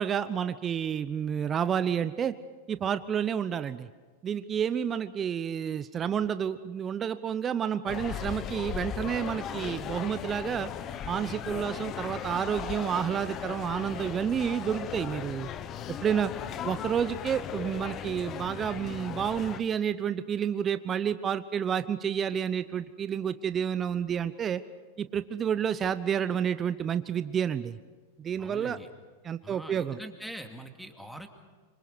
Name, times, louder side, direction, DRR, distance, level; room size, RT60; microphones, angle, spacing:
voice 1, 0.0-2.3 2.7-3.9 4.2-10.7 11.1-15.5 16.0-16.3 16.6-24.6 25.0-27.8 28.2-28.8 29.2-30.0, right 8 dB, 30° right, 13 dB, 0.8 m, -30 dB
sound 1, 7.9-19.6, left 9 dB, 35° left, 1.3 m, -37 dB
voice 2, 28.4-28.9 29.4-31.3, right 1 dB, ahead, 4 dB, 2.6 m, -43 dB
26.0 x 25.0 x 6.2 m, 1.3 s
hypercardioid pair, 95°, 0 cm